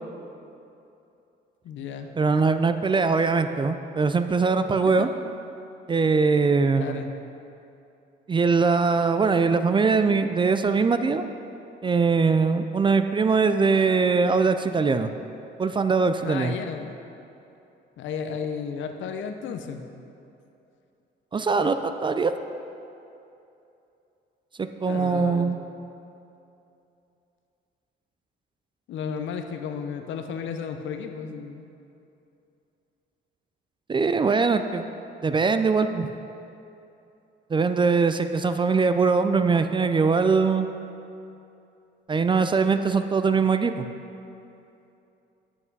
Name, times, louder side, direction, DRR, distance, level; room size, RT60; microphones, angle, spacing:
voice 1, 1.6-2.1 4.8-5.2 6.8-7.2 16.2-17.0 18.0-19.9 24.9-25.6 28.9-31.7, left 6 dB, 75° left, 6 dB, 0.6 m, -33 dB
voice 2, 2.2-5.1 5.9-7.1 8.3-11.2 11.8-15.1 15.6-16.5 21.3-22.4 24.6-25.6 33.9-34.8 35.2-36.1 37.5-40.7 42.1-43.9, right 4 dB, 25° right, 9 dB, 0.3 m, -22 dB
8.2 x 5.6 x 4.6 m, 2.8 s
cardioid pair, 90°, 20 cm